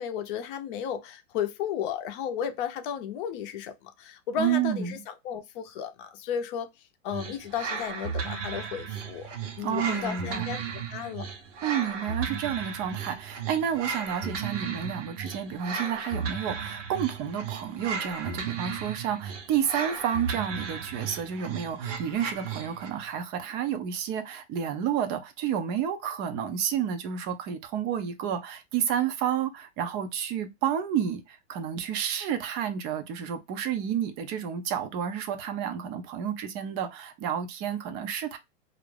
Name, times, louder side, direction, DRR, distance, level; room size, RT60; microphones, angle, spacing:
voice 1, 0.0-6.7 7.0-9.3 9.6-10.6 10.9-11.2, left 8 dB, 45° left, 0.6 m, -33 dB
voice 2, 4.4-5.0 9.6-10.5 11.6-38.4, right 9 dB, 30° right, 0.4 m, -30 dB
sound 1, 7.1-23.0, right 6 dB, 80° right, 0.9 m, -35 dB
2.5 x 2.1 x 3.1 m
hypercardioid pair, 125°, 36 cm